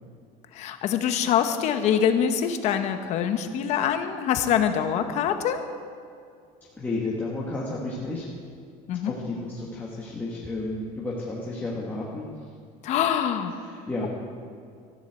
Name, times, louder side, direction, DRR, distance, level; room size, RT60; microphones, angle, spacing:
voice 1, 0.5-5.6 8.9-9.1 12.8-13.5, left 8 dB, 45° left, 8 dB, 0.9 m, -24 dB
voice 2, 6.7-8.3 9.0-12.5 13.5-14.1, left 2 dB, 10° left, -5 dB, 1.2 m, -32 dB
14.0 x 7.3 x 7.8 m, 2.3 s
cardioid pair, 175°, 16 cm